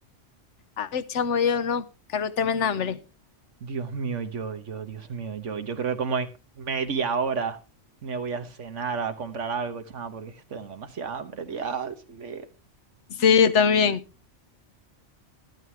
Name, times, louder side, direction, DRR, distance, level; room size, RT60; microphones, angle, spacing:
voice 1, 0.8-1.8 2.1-3.0 13.2-14.0, left 6 dB, 75° left, 1.2 m, -22 dB
voice 2, 3.6-6.3 6.6-7.6 8.0-12.5, right 5 dB, 75° right, 1.5 m, -31 dB
12.5 x 12.5 x 3.4 m
omnidirectional pair, 1.3 m